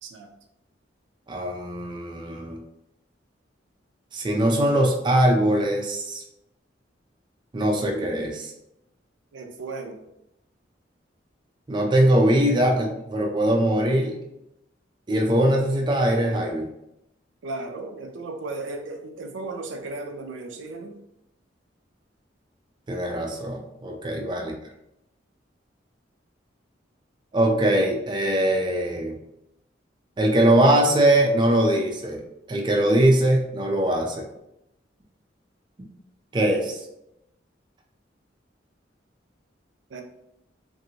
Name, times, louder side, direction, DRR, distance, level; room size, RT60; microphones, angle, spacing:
voice 1, 1.3-2.6 4.1-6.2 7.5-8.5 11.7-14.2 15.1-16.7 22.9-24.5 27.3-29.2 30.2-32.2 32.5-34.2 36.3-36.8, right 1 dB, 25° right, 1 dB, 0.4 m, -21 dB
voice 2, 9.3-10.0 17.4-20.9 24.3-24.5 39.9-40.0, right 3 dB, 85° right, 3 dB, 0.4 m, -35 dB
2.8 x 2.6 x 2.7 m, 0.84 s
head